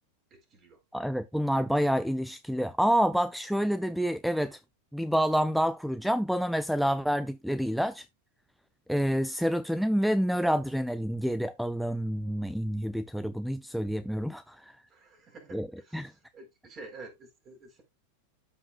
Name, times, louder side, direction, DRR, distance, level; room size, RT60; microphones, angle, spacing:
voice 1, 0.3-0.8 14.9-17.8, right 3 dB, 30° right, 4.0 m, -49 dB
voice 2, 0.9-4.6 4.9-8.1 8.9-14.8 15.5-15.7 15.9-16.1, equal, ahead, 0.4 m, -28 dB
13.0 x 5.5 x 2.4 m
figure-of-eight pair, 90°, 0 cm